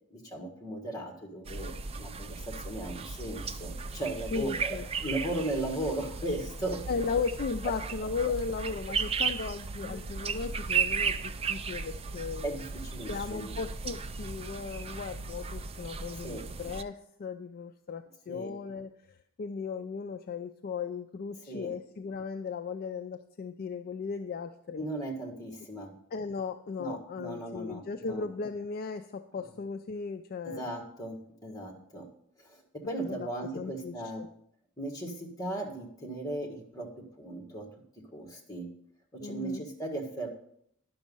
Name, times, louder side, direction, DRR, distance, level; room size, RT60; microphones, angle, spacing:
voice 1, 0.1-4.8 5.0-6.8 9.8-10.0 12.4-13.5 16.2-16.5 18.3-18.5 21.5-21.7 24.8-25.9 26.8-28.2 30.4-32.1 32.4-34.2 34.8-36.9 37.2-37.7 38.1-38.7 39.1-40.3, right 1 dB, 15° left, 2 dB, 1.7 m, -37 dB
sound 1, 1.4-16.8, right 5 dB, 25° right, 0.4 m, -35 dB
voice 2, 4.3-4.9 6.9-12.5 13.1-24.8 26.1-30.7 33.1-33.3 33.5-34.3 39.2-39.6, left 5 dB, 45° left, 7 dB, 0.4 m, -36 dB
10.5 x 6.1 x 5.4 m, 0.71 s
head